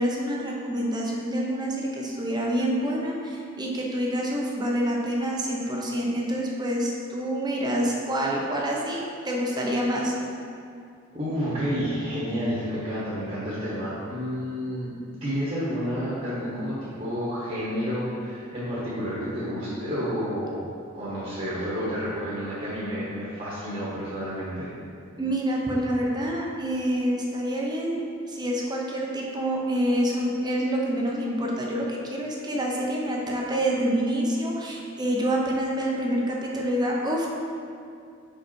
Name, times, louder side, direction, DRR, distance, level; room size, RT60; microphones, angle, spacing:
voice 1, 0.0-10.1 25.2-37.3, equal, 20° right, -2 dB, 0.7 m, -27 dB
voice 2, 11.1-14.9 15.2-20.6 20.9-24.7, equal, 35° right, -9 dB, 1.3 m, -30 dB
5.3 x 5.0 x 4.3 m, 2.4 s
head